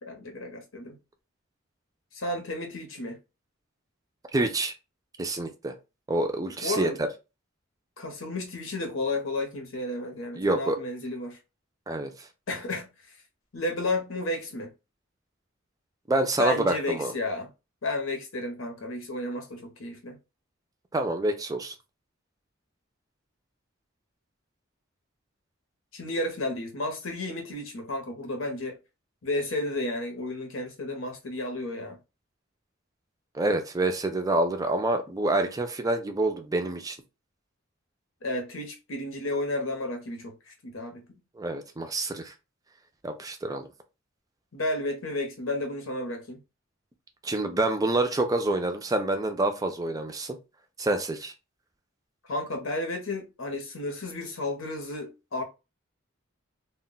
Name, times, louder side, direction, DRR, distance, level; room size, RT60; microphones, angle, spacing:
voice 1, 0.0-1.0 2.1-3.2 6.6-7.0 8.0-11.4 12.5-12.9 13.5-14.7 16.4-17.5 17.8-20.2 25.9-28.8 29.2-32.0 38.2-41.0 44.5-46.4 52.2-55.4, left 2 dB, 90° left, 0.8 m, -32 dB
voice 2, 4.3-4.7 5.2-5.7 6.1-7.1 10.3-10.8 11.9-12.1 16.1-17.1 20.9-21.7 33.3-37.0 41.4-42.3 43.0-43.6 47.2-50.4 50.8-51.3, right 2 dB, 20° right, 0.4 m, -27 dB
2.2 x 2.1 x 3.8 m
head